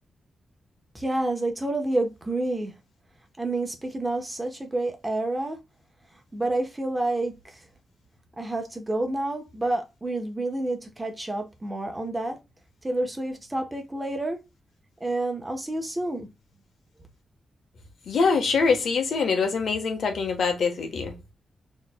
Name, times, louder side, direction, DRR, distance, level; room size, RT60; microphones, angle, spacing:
voice 1, 0.9-2.7 3.4-5.6 6.3-7.6 8.4-12.4 12.8-14.4 15.0-16.3, right 2 dB, 15° right, 0.9 m, -29 dB
voice 2, 18.1-21.3, left 5 dB, 75° left, 1.1 m, -24 dB
6.4 x 3.1 x 2.2 m
wide cardioid pair, 130°, 0 cm